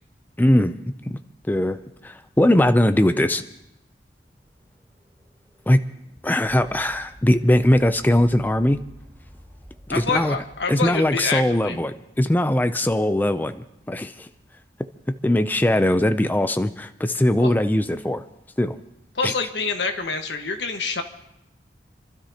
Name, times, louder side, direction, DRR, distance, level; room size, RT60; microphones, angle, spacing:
voice 1, 0.4-0.8 1.1-1.2 1.5-3.4 5.7-5.8 6.2-8.8 9.9-10.4 10.7-14.3 15.1-18.2 18.6-18.8 19.2-19.3, left 1 dB, 10° left, 10 dB, 0.4 m, -20 dB
sound 1, 4.3-12.4, equal, 20° right, 1.8 m, -49 dB
voice 2, 9.9-11.8 17.4-17.5 19.1-21.0, left 4 dB, 80° left, 5 dB, 1.4 m, -26 dB
29.5 x 12.5 x 2.9 m, 0.85 s
head